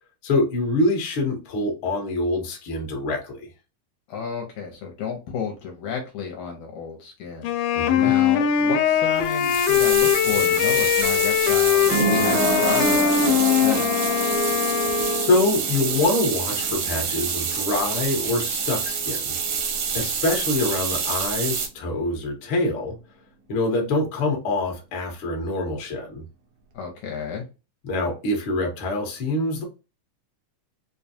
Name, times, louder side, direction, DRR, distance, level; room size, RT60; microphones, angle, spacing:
voice 1, 0.2-3.5 7.7-8.1 14.8-19.3 19.9-22.9 23.5-26.2 27.8-29.6, left 2 dB, 55° left, 1.5 m, -25 dB
voice 2, 4.1-7.5 8.0-13.9 26.7-27.4, left 6 dB, 75° left, 2.0 m, -32 dB
Wind instrument woodwind instrument, 7.4-15.4, left 9 dB, 90° left, 2.1 m, -21 dB
sound 1, 8.8-20.3 20.6-20.7, right 4 dB, 90° right, 1.2 m, -30 dB
sound 2, 9.2-21.7, right 6 dB, 75° right, 1.5 m, -27 dB
5.2 x 2.3 x 2.7 m
omnidirectional pair, 3.6 m